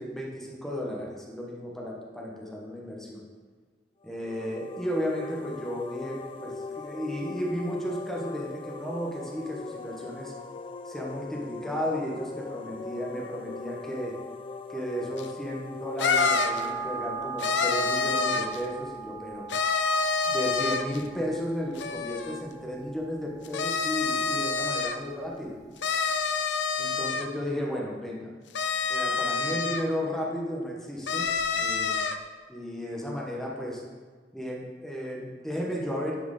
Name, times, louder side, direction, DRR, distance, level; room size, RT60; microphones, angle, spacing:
voice 1, 0.0-3.2 4.0-10.3 10.8-14.2 14.7-19.5 20.3-25.5 26.8-28.3 28.9-32.0 32.5-33.8 34.3-36.2, equal, ahead, -2 dB, 0.9 m, -34 dB
sound 1, 4.0-18.7, left 3 dB, 30° left, 0.3 m, -41 dB
sound 2, 15.2-15.3 16.0-16.7 17.4-18.6 19.5-21.0 21.8-22.4 23.4-25.0 25.8-27.3 28.5-29.8 31.1-32.2, left 4 dB, 85° left, 0.5 m, -27 dB
sound 3, 16.2-24.9 25.3-25.4, right 4 dB, 20° right, 0.5 m, -38 dB
9.5 x 4.4 x 3.8 m, 1.5 s
head